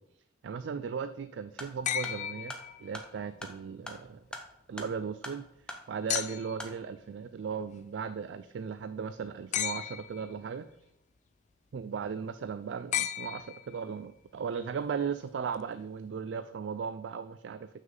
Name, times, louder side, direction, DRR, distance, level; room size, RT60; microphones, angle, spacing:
voice 1, 0.4-4.2 4.7-5.5 5.9-10.6 11.7-17.7, right 6 dB, 70° right, 11 dB, 0.3 m, -37 dB
sound 1, 1.5-6.8, left 1 dB, 5° left, 0.8 m, -45 dB
sound 2, 1.9-3.2 6.1-6.7 9.5-10.3 12.9-14.0 15.5-15.6, left 11 dB, 40° left, 0.3 m, -34 dB
7.3 x 6.2 x 3.8 m, 0.84 s
head